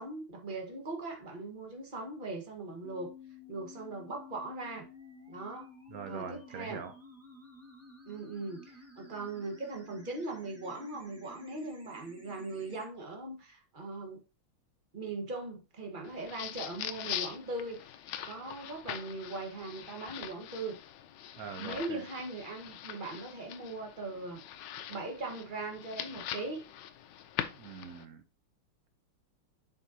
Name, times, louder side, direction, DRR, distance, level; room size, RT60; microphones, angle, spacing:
voice 1, 0.0-3.1 3.5-4.9 5.3-5.7 6.1-6.8 8.1-14.2 14.9-20.8 21.6-24.4 24.9-26.6, right 2 dB, 25° right, 1.3 m, -40 dB
sound 1, 2.8-12.9, left 3 dB, 10° right, 0.7 m, -53 dB
voice 2, 5.9-6.9 21.4-22.0 27.5-28.2, right 7 dB, 80° right, 0.8 m, -43 dB
sound 2, 16.0-28.0, left 10 dB, 70° left, 1.1 m, -42 dB
7.7 x 5.3 x 2.7 m
omnidirectional pair, 2.4 m